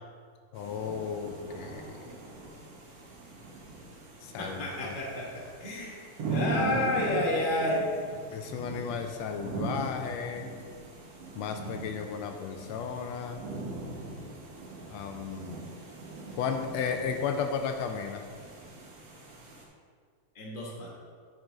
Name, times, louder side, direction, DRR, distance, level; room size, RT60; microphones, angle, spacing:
voice 1, 0.5-1.8 4.2-4.9 8.3-10.5 11.3-13.4 14.9-15.7 16.4-18.2, left 6 dB, 80° left, 5 dB, 1.6 m, -34 dB
sound 1, 0.5-19.6, right 3 dB, 65° right, 2.5 m, -40 dB
voice 2, 4.4-6.0 6.3-7.9 20.3-20.9, left 1 dB, 55° left, -3 dB, 0.5 m, -30 dB
9.3 x 6.1 x 3.8 m, 2.1 s
omnidirectional pair, 3.3 m